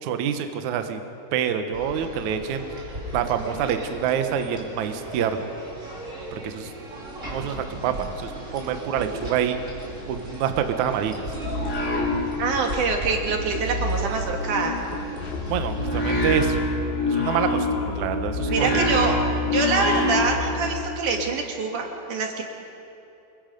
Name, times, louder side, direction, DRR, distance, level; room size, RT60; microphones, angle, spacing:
voice 1, 0.0-1.0 1.3-2.6 3.1-5.5 6.3-7.0 7.3-9.6 10.1-11.2 15.5-16.6 17.1-18.9, right 8 dB, 70° right, 7 dB, 1.8 m, -27 dB
sound 1, 1.7-16.6, right 1 dB, 20° right, 3.2 m, -37 dB
sound 2, 10.9-12.7 13.0-20.5, left 1 dB, 60° left, 5.3 m, -26 dB
voice 2, 12.4-14.8 18.5-19.1 19.5-22.4, right 4 dB, 55° right, 2 dB, 2.8 m, -25 dB
Musical instrument, 15.2-20.9, left 5 dB, 85° left, 3.6 m, -33 dB
27.0 x 22.0 x 5.3 m, 2.8 s
omnidirectional pair, 4.9 m